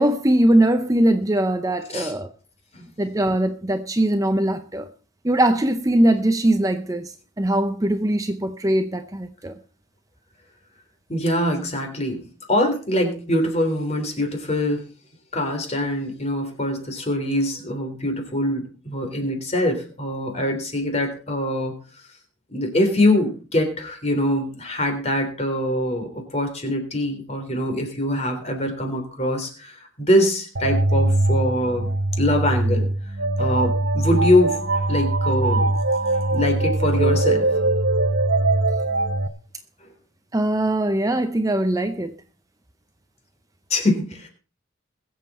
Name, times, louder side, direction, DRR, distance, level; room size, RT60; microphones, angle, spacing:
voice 1, 0.0-2.3 3.0-4.9 5.2-9.5 40.3-42.1, right 1 dB, 15° right, 0.7 m, -21 dB
voice 2, 11.1-12.2 12.5-14.9 15.3-21.7 22.5-31.9 32.2-32.9 33.4-35.7 36.1-37.5 43.7-44.3, left 1 dB, 35° left, 3.5 m, -23 dB
sound 1, 30.6-39.3, right 2 dB, 65° right, 0.9 m, -21 dB
21.5 x 7.6 x 4.2 m
head